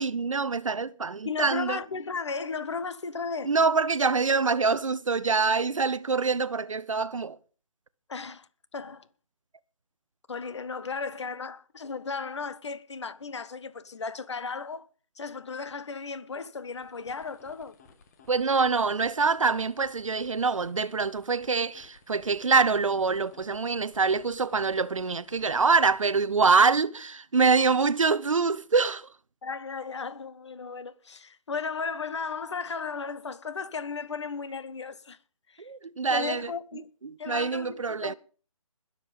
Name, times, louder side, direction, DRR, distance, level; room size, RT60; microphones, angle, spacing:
voice 1, 0.0-1.8 3.4-7.4 18.3-29.1 35.6-36.5 37.0-38.1, right 4 dB, 65° right, 0.7 m, -25 dB
voice 2, 1.2-3.5 8.1-9.1 10.3-14.9 15.2-17.7 29.4-35.2 35.5-35.7 36.1-36.9 37.2-38.1, left 5 dB, 50° left, 1.3 m, -35 dB
sound 1, 16.6-26.6, left 5 dB, 30° left, 1.8 m, -57 dB
21.0 x 7.5 x 5.2 m
figure-of-eight pair, 145°, 18 cm